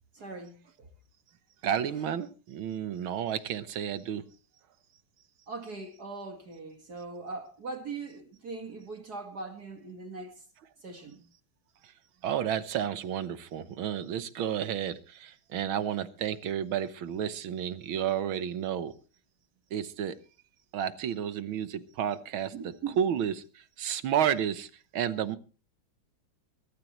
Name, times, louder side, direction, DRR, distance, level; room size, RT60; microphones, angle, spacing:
voice 1, 0.1-0.9 5.5-10.4 10.8-11.2 22.5-23.0, right 4 dB, 50° right, 2.2 m, -40 dB
voice 2, 1.6-4.2 12.2-18.9 19.7-20.2 20.7-24.7 24.9-25.4, right 9 dB, 75° right, 1.8 m, -31 dB
22.5 x 13.5 x 3.1 m
omnidirectional pair, 2.3 m